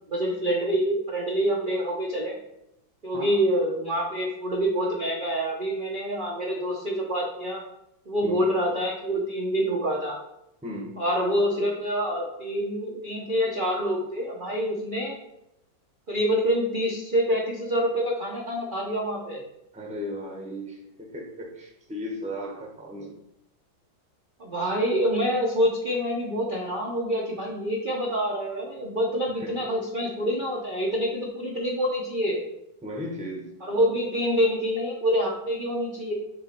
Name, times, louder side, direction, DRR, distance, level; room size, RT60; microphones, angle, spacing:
voice 1, 0.1-2.3 3.0-7.6 8.1-10.2 11.0-15.2 16.1-19.4 24.4-32.4 33.6-36.1, equal, 45° right, -3 dB, 0.6 m, -26 dB
voice 2, 3.1-3.4 8.2-8.5 10.6-11.0 19.7-23.2 29.4-29.6 32.8-33.5, equal, 5° right, -1 dB, 0.7 m, -36 dB
6.8 x 3.1 x 4.4 m, 0.82 s
omnidirectional pair, 2.1 m